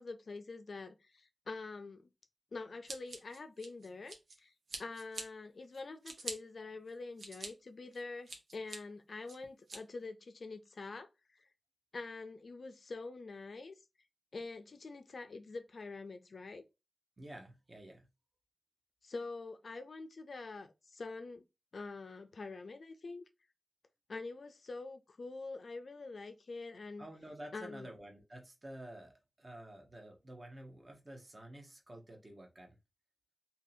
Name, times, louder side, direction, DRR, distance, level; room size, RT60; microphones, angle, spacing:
voice 1, 0.0-2.1 2.5-4.5 4.8-11.5 11.9-13.8 14.3-16.6 19.0-21.5 21.7-23.2 24.1-27.0 27.5-27.9, left 3 dB, 60° left, 0.4 m, -45 dB
Scissors, 2.9-4.4 4.7-5.2 5.7-6.3 6.9-7.5 7.9-8.8 9.3-9.8, right 3 dB, 75° right, 0.9 m, -45 dB
voice 2, 17.2-18.1 27.0-32.8, right 1 dB, 30° right, 0.8 m, -50 dB
2.7 x 2.7 x 4.1 m
wide cardioid pair, 120°, 0 cm